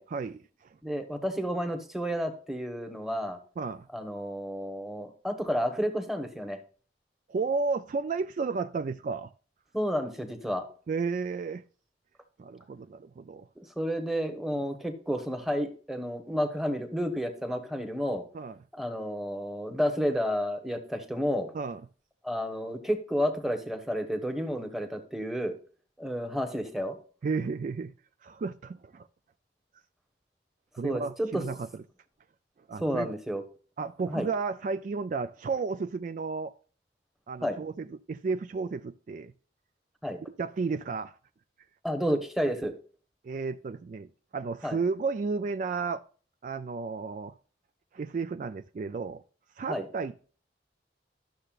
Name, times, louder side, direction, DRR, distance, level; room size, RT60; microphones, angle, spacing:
voice 1, 0.1-0.7 3.6-3.9 7.3-9.3 10.9-11.6 12.4-13.5 18.3-18.6 21.5-21.8 27.2-27.9 28.2-29.1 30.8-31.6 32.7-33.1 33.8-36.5 37.3-39.3 40.4-41.2 43.2-46.0 46.4-47.3 47.9-49.2 49.6-50.1, right 4 dB, 45° right, 0.3 m, -33 dB
voice 2, 0.8-3.4 3.9-6.6 9.7-10.6 13.6-18.2 18.7-21.5 22.2-25.5 26.0-27.0 30.8-31.4 32.8-33.4 34.1-34.3 37.4-37.6 40.0-40.2 41.8-42.7 44.6-44.8 49.7-49.9, equal, ahead, 1.0 m, -31 dB
12.0 x 6.6 x 2.4 m
head